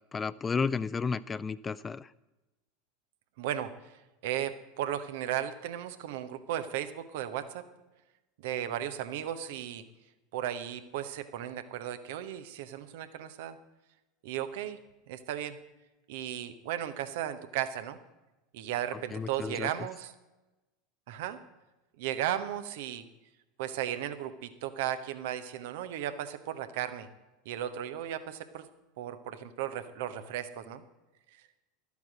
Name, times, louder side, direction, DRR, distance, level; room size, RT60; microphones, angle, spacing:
voice 1, 0.1-2.1 19.1-19.7, left 5 dB, 20° left, 18 dB, 0.3 m, -32 dB
voice 2, 3.4-3.7 4.2-7.6 8.4-9.8 10.3-13.6 14.2-14.8 15.1-15.6 16.1-18.0 18.5-20.1 21.1-21.4 22.0-23.1 23.6-27.1 27.4-28.6 29.0-30.8, right 11 dB, 60° right, 10 dB, 1.0 m, -35 dB
12.5 x 8.5 x 6.4 m, 1.0 s
figure-of-eight pair, 75°, 0 cm